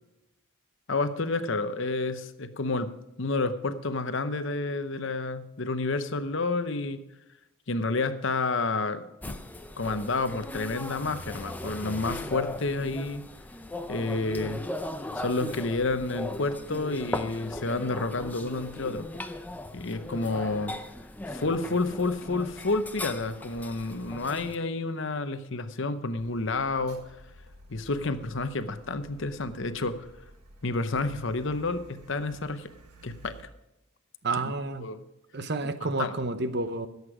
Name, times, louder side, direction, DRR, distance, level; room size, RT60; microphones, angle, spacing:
voice 1, 0.9-2.9 3.2-7.0 7.7-9.4 9.8-13.2 13.9-14.6 15.2-19.1 19.7-20.7 21.3-27.0 27.7-30.0 30.6-32.7 33.0-33.4 34.4-34.5 34.8-35.0 35.8-36.1, left 3 dB, 55° left, 11 dB, 0.8 m, -30 dB
sound 1, 9.2-24.6, left 1 dB, 5° left, 0.5 m, -38 dB
Car, 26.2-33.4, right 1 dB, 90° right, 1.7 m, -51 dB
voice 2, 34.2-34.9 35.3-36.9, right 3 dB, 50° right, 11 dB, 0.8 m, -30 dB
16.0 x 8.2 x 4.9 m, 0.96 s
head